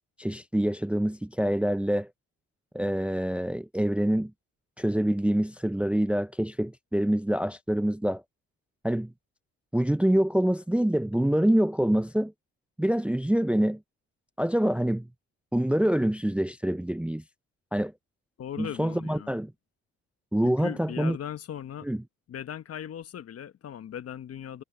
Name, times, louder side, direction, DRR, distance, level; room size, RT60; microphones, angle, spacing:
voice 1, 0.2-2.1 2.7-4.3 4.8-8.2 8.8-9.1 9.7-12.3 12.8-13.8 14.4-15.1 15.5-17.2 17.7-17.9 18.6-19.5 20.3-21.2 21.8-22.0, right 1 dB, 5° right, 0.5 m, -26 dB
voice 2, 18.4-19.3 20.4-21.9 22.3-24.6, left 9 dB, 55° left, 1.0 m, -38 dB
cardioid pair, 90°, 30 cm